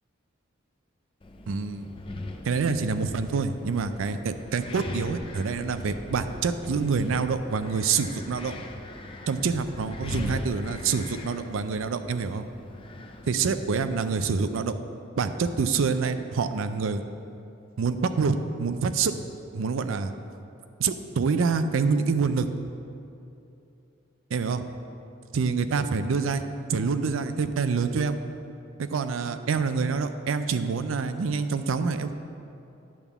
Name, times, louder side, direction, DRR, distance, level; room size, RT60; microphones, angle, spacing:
Wind, 1.2-13.8, left 2 dB, 25° left, 0.5 m, -40 dB
voice 1, 1.5-1.9 2.5-8.5 9.3-12.4 13.3-14.8 15.2-17.0 17.8-19.1 19.5-20.1 20.8-22.5 24.3-24.6 25.3-26.4 26.7-28.2 28.8-32.1, right 5 dB, 75° right, 10 dB, 0.4 m, -26 dB
10.0 x 3.6 x 7.0 m, 2.8 s
head